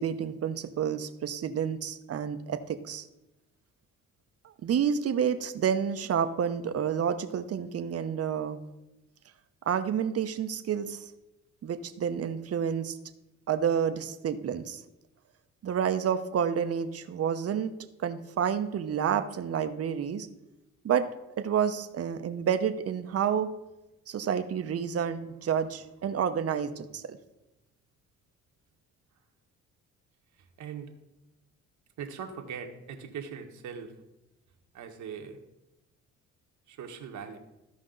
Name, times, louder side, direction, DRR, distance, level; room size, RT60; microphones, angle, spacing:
voice 1, 0.0-3.1 4.4-8.6 9.7-11.1 11.6-13.0 13.5-14.8 15.6-17.7 18.0-20.3 20.8-21.1 21.4-23.5 24.1-27.2, right 8 dB, 50° right, 9 dB, 0.8 m, -29 dB
voice 2, 30.6-30.9 32.0-33.9 34.7-35.4 36.7-37.4, right 7 dB, 75° right, 4 dB, 1.3 m, -40 dB
14.5 x 5.2 x 3.9 m, 0.95 s
cardioid pair, 90°, 30 cm